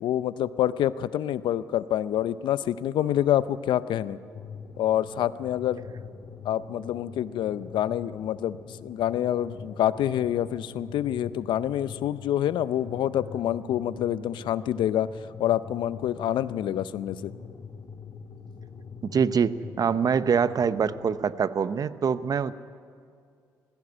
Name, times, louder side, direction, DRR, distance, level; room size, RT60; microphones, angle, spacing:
voice 1, 0.0-4.2 4.8-5.8 6.4-15.1 15.4-17.3, left 11 dB, 75° left, 16 dB, 0.6 m, -27 dB
sound 1, 4.3-21.2, left 5 dB, 55° left, 1.9 m, -43 dB
voice 2, 19.0-22.5, right 6 dB, 50° right, 14 dB, 0.8 m, -24 dB
17.5 x 15.5 x 9.7 m, 2.3 s
supercardioid pair, 55°, 8 cm